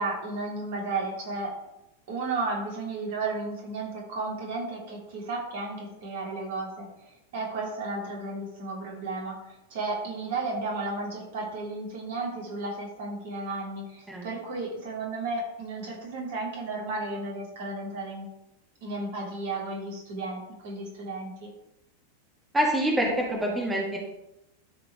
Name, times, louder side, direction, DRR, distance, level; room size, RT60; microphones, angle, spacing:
voice 1, 0.0-1.5 2.1-6.9 7.3-18.3 18.8-21.5, right 3 dB, 55° right, -2 dB, 3.2 m, -33 dB
voice 2, 22.5-24.0, equal, 10° right, -3 dB, 2.5 m, -26 dB
13.5 x 4.9 x 4.8 m, 0.89 s
figure-of-eight pair, 90°, 0 cm